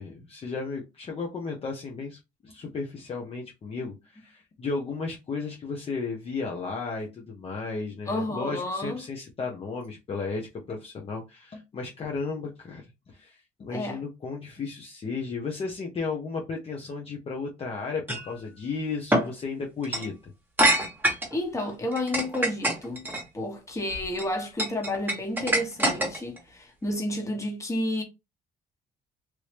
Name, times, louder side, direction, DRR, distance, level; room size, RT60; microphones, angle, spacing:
voice 1, 0.0-20.1, left 4 dB, 35° left, 0.8 m, -34 dB
voice 2, 8.1-9.0 13.7-14.0 21.3-23.1 23.3-28.0, left 1 dB, 15° left, 1.3 m, -31 dB
sound 1, 18.1-18.3 19.1-19.3 19.8-20.1 20.6-21.3 21.9-23.2 23.9-24.2 24.6-26.4, right 1 dB, 10° right, 1.3 m, -24 dB
3.1 x 2.6 x 3.3 m
cardioid pair, 110°, 17 cm